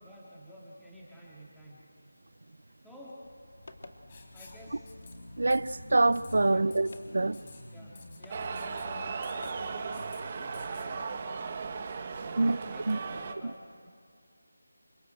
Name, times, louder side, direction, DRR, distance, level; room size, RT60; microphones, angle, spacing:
voice 1, 0.0-1.8 2.8-3.3 4.3-4.9 6.4-6.7 7.7-9.9 10.4-11.6 12.2-13.9, equal, ahead, 2.5 m, -51 dB
sound 1, 3.2-11.1, left 2 dB, 65° left, 2.3 m, -48 dB
Writing, 4.1-4.6 4.9-5.1 5.5-5.8 6.1-6.3 6.7-7.0 7.3-7.6 7.9-8.2 8.6-8.8 9.2-9.6 9.9-10.2 10.5-10.9, left 4 dB, 35° left, 5.0 m, -53 dB
voice 2, 5.4-7.4 12.4-12.6 12.9-13.0, right 2 dB, 65° right, 0.8 m, -25 dB
sound 2, 8.3-13.3, right 5 dB, 30° right, 1.7 m, -37 dB
28.5 x 25.0 x 7.8 m
figure-of-eight pair, 165°, 0 cm